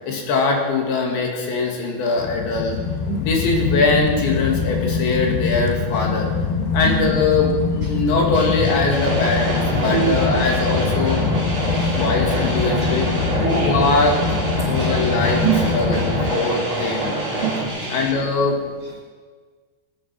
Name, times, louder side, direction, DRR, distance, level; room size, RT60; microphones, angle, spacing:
voice 1, 0.0-2.7 3.2-6.3 6.7-11.3 11.9-13.1 13.4-17.1 17.9-18.6, left 3 dB, 70° left, 0 dB, 4.3 m, -22 dB
sound 1, 2.2-16.4, left 6 dB, 90° left, 2.1 m, -24 dB
sound 2, 8.3-18.1, equal, 5° right, 1.6 m, -30 dB
Wheel Lathe, 8.9-17.7, right 2 dB, 25° right, 2.5 m, -27 dB
voice 2, 11.7-12.0 13.4-13.7 14.6-14.9 15.4-15.6 15.9-16.0 17.4-17.9, right 12 dB, 85° right, 1 dB, 1.8 m, -25 dB
19.5 x 9.2 x 5.9 m, 1.5 s
omnidirectional pair, 5.4 m